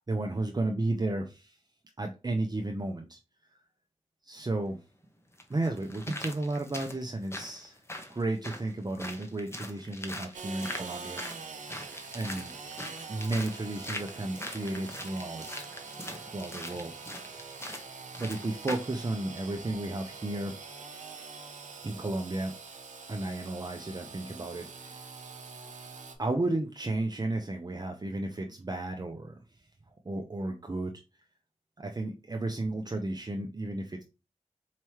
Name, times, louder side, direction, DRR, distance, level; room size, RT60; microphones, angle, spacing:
voice 1, 0.1-1.6 2.0-3.2 4.2-4.8 5.5-7.8 8.1-11.2 12.1-12.5 13.1-15.7 16.1-16.9 17.3-17.4 18.2-20.5 21.8-22.5 23.1-25.1 26.2-29.4 30.1-30.9 31.8-34.0, right 2 dB, 35° right, 3 dB, 0.7 m, -33 dB
sound 1, 4.5-4.6 5.4-19.0 19.4-19.5, left 1 dB, 20° left, 1.0 m, -42 dB
Engine / Sawing, 10.3-26.2, right 4 dB, 85° right, 0.7 m, -44 dB
4.7 x 3.0 x 3.0 m, 0.29 s
cardioid pair, 45°, 13 cm